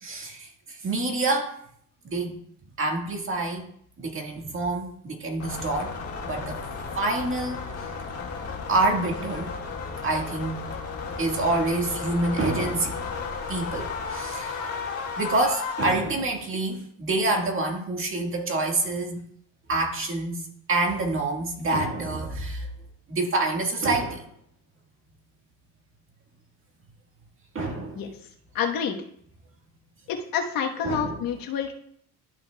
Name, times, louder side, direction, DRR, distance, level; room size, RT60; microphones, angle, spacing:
voice 1, 0.0-1.5 2.0-2.3 2.8-3.7 4.0-6.0 6.2-6.6 7.0-7.6 8.7-9.5 10.0-10.7 11.2-13.0 13.5-14.7 15.2-19.2 19.7-22.7 23.1-24.2 27.5-28.0 30.8-31.1, right 2 dB, 35° right, 1 dB, 1.7 m, -27 dB
sound 1, 5.4-15.9, left 4 dB, 45° left, 1.8 m, -34 dB
voice 2, 28.5-29.0 30.1-31.7, left 7 dB, 70° left, 3 dB, 1.2 m, -28 dB
12.5 x 5.6 x 2.3 m, 0.65 s
cardioid pair, 100°, 35 cm